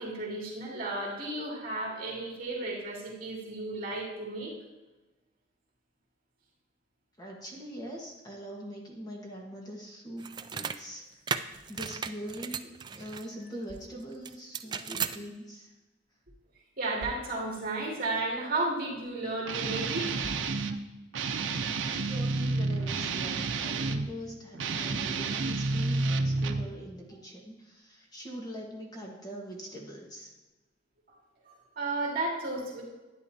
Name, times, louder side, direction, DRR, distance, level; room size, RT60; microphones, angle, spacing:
voice 1, 0.0-4.5 16.8-20.2 31.5-32.8, right 2 dB, 50° right, -3 dB, 2.5 m, -33 dB
voice 2, 7.2-11.0 11.7-15.7 21.9-30.3, equal, 20° left, -1 dB, 1.4 m, -42 dB
sound 1, 10.2-10.8 11.3-13.3 14.2-15.2, right 6 dB, 25° right, 0.3 m, -35 dB
Guitar, 19.4-20.8 21.1-24.1 24.5-26.7, right 3 dB, 85° right, 0.6 m, -30 dB
11.5 x 9.6 x 2.8 m, 1.1 s
head